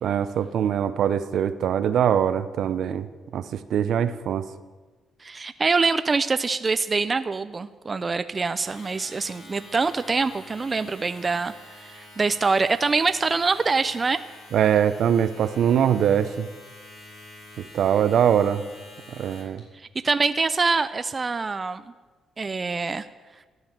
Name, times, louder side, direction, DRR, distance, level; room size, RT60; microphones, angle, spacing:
voice 1, 0.0-3.1 3.3-4.5 14.5-16.5 17.6-18.6 19.1-19.6, right 9 dB, 70° right, 12 dB, 0.8 m, -22 dB
voice 2, 5.2-14.2 19.7-21.8 22.4-23.1, right 4 dB, 30° right, 11 dB, 0.5 m, -25 dB
Domestic sounds home sounds, 8.5-19.6, left 2 dB, 75° left, 4.6 m, -47 dB
14.0 x 9.8 x 7.4 m, 1.3 s
cardioid pair, 90°, 0 cm